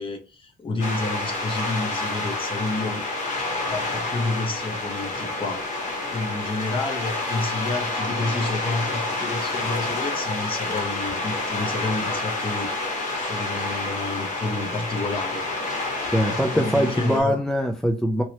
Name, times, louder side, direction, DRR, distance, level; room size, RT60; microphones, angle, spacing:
voice 1, 0.0-3.0 3.7-12.7 13.1-15.5 16.3-17.4, left 2 dB, 30° left, 0.9 m, -30 dB
sound 1, 0.8-17.2, left 2 dB, 50° left, 1.4 m, -29 dB
voice 2, 16.1-18.2, equal, 5° left, 0.4 m, -22 dB
2.9 x 2.9 x 2.9 m
cardioid pair, 110°, 17 cm